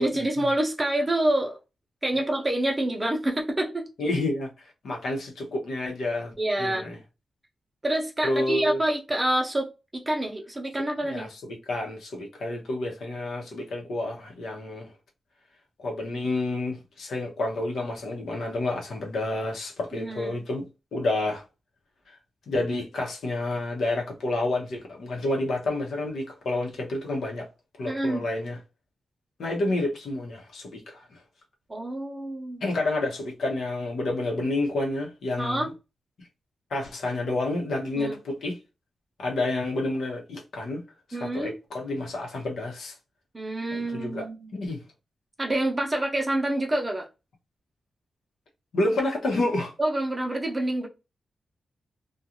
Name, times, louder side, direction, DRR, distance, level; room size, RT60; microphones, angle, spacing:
voice 1, 0.0-1.6 2.0-3.9 6.4-7.0 7.8-11.3 19.9-20.4 27.8-28.2 31.7-32.7 35.4-35.7 38.0-38.2 41.1-41.5 43.3-44.5 45.4-47.1 49.8-50.9, right 1 dB, 15° right, 0.7 m, -27 dB
voice 2, 4.0-6.3 6.6-7.0 8.2-8.8 11.0-14.9 15.8-20.6 20.9-21.4 22.1-22.2 22.5-27.5 27.8-28.6 29.4-31.1 32.6-35.7 36.7-38.6 39.2-40.8 41.1-42.9 43.7-44.3 44.5-44.8 48.7-49.7, left 2 dB, 80° left, 0.9 m, -29 dB
2.5 x 2.3 x 2.8 m
wide cardioid pair, 130°, 0 cm